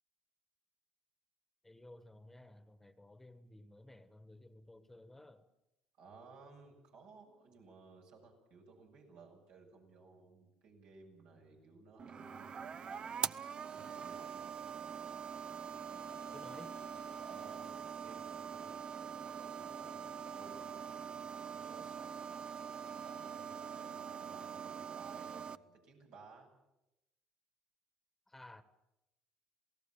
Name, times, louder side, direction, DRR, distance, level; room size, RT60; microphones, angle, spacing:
voice 1, 1.6-5.5 16.3-16.8 28.3-28.6, left 1 dB, 10° left, 11 dB, 1.5 m, -56 dB
voice 2, 6.0-12.6 13.7-14.4 17.2-22.1 22.9-26.5, right 4 dB, 80° right, 0 dB, 7.7 m, -58 dB
sound 1, 12.0-25.6, right 7 dB, 45° right, 0.7 m, -43 dB
28.0 x 17.5 x 7.4 m, 0.94 s
supercardioid pair, 75°, 2 cm